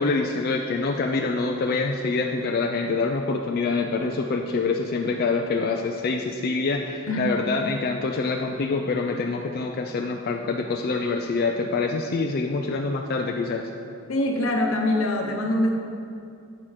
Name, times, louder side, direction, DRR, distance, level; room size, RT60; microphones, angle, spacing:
voice 1, 0.0-13.7, left 3 dB, 45° left, 2 dB, 0.4 m, -26 dB
voice 2, 14.1-15.7, left 1 dB, 80° left, 2 dB, 0.9 m, -23 dB
7.7 x 5.7 x 4.8 m, 2.5 s
head